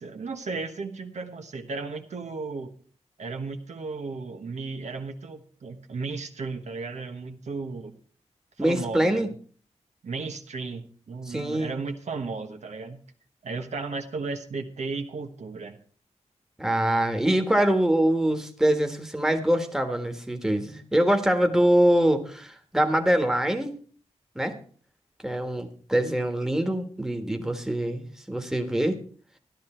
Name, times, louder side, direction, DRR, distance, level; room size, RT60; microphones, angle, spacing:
voice 1, 0.0-2.7 3.2-7.9 8.6-9.4 10.0-13.0 13.4-15.8, right 4 dB, 75° right, 5 dB, 1.3 m, -34 dB
voice 2, 8.6-9.3 11.3-11.7 16.6-23.8 24.3-24.5 25.2-29.0, right 1 dB, 5° right, 5 dB, 1.5 m, -24 dB
13.0 x 11.0 x 4.4 m, 0.43 s
wide cardioid pair, 105°, 12 cm